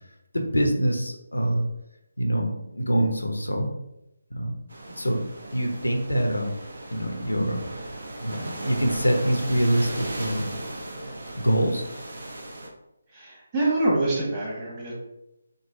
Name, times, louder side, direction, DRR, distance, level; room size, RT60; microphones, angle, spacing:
voice 1, 0.3-1.7 2.2-3.7 4.3-4.5 5.0-5.2 5.5-6.5 6.9-7.6 8.2-10.5 11.3-11.8, right 1 dB, 85° left, 2 dB, 0.7 m, -25 dB
sound 1, 4.7-12.7, right 1 dB, 65° right, 0.8 m, -36 dB
voice 2, 13.1-15.0, right 2 dB, 25° right, -5 dB, 1.3 m, -25 dB
3.9 x 2.2 x 3.6 m, 0.87 s
figure-of-eight pair, 150°, 0 cm